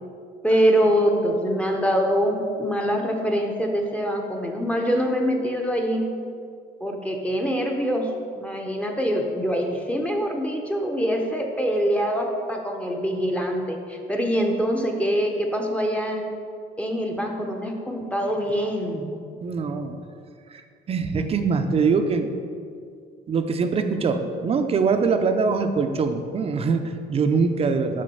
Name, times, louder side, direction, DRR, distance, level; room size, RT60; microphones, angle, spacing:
voice 1, 0.4-6.0 6.8-16.3 16.8-19.1, equal, 5° left, 1 dB, 0.7 m, -24 dB
voice 2, 19.4-20.0 20.5-20.6 20.9-22.3 23.3-28.0, right 5 dB, 35° right, 7 dB, 0.5 m, -23 dB
6.5 x 3.9 x 5.4 m, 2.3 s
cardioid pair, 110°, 17 cm